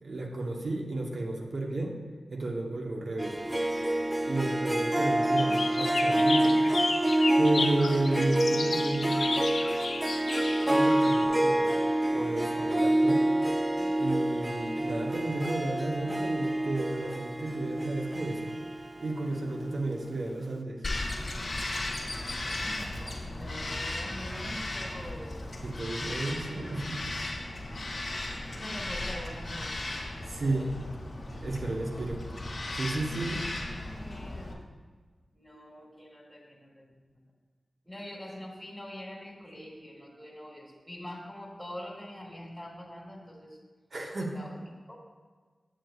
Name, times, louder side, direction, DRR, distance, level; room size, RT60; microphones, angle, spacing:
voice 1, 0.0-1.9 2.3-3.4 4.3-6.6 7.4-9.3 10.7-11.8 12.1-13.2 14.0-18.5 19.0-20.8 25.6-27.0 30.2-30.7 31.3-32.2 32.7-33.4 43.9-44.3, right 2 dB, 65° right, 1 dB, 0.9 m, -32 dB
Harp, 3.2-20.0, right 1 dB, 25° right, 0.4 m, -27 dB
sound 1, 5.4-11.2, left 3 dB, 75° left, 0.4 m, -33 dB
voice 2, 13.4-14.0 22.6-22.9 23.2-25.4 28.2-29.7 30.3-30.7 33.0-33.4 33.8-34.6 35.3-37.2 37.8-43.6 44.2-44.6 44.9-45.0, equal, ahead, -3 dB, 1.5 m, -45 dB
Bird vocalization bird call bird song, 20.8-34.5, left 2 dB, 50° left, 0.9 m, -36 dB
7.6 x 6.5 x 2.3 m, 1.5 s
cardioid pair, 40°, 0 cm